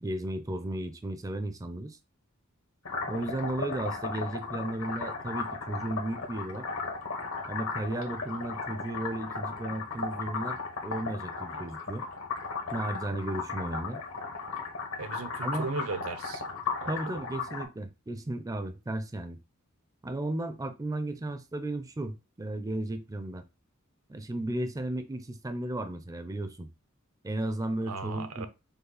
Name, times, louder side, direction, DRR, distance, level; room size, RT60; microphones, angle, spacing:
voice 1, 0.0-2.0 3.1-6.7 7.5-12.0 12.7-14.0 15.4-15.7 16.9-19.4 20.0-23.4 24.1-26.7 27.2-28.5, right 1 dB, 15° right, 0.4 m, -34 dB
sound 1, 2.8-17.6, left 4 dB, 75° left, 1.1 m, -36 dB
voice 2, 15.0-16.4 16.8-16.9 27.9-28.5, right 3 dB, 80° right, 0.6 m, -36 dB
5.3 x 2.3 x 3.9 m
head